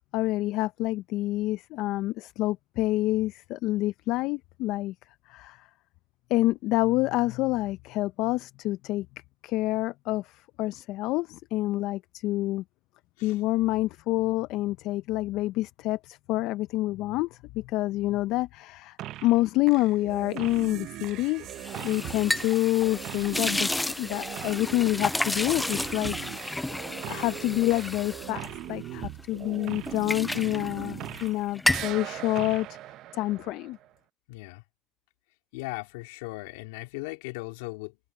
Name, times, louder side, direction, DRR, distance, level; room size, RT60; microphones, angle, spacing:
voice 1, 0.1-4.9 5.3-5.7 6.3-9.1 9.4-12.6 13.2-19.0 19.2-21.5 21.8-23.7 24.0-32.8 33.1-33.8, left 17 dB, 65° left, 0.5 m, -28 dB
sound 1, 19.0-19.4 19.7-31.4 31.7-33.9, right 15 dB, 60° right, 0.7 m, -40 dB
sound 2, 21.5-29.3 29.6-31.3 31.5-32.0, left 1 dB, 5° left, 0.3 m, -32 dB
voice 2, 34.3-34.6 35.5-38.0, left 23 dB, 85° left, 3.1 m, -38 dB
supercardioid pair, 100°, 0 cm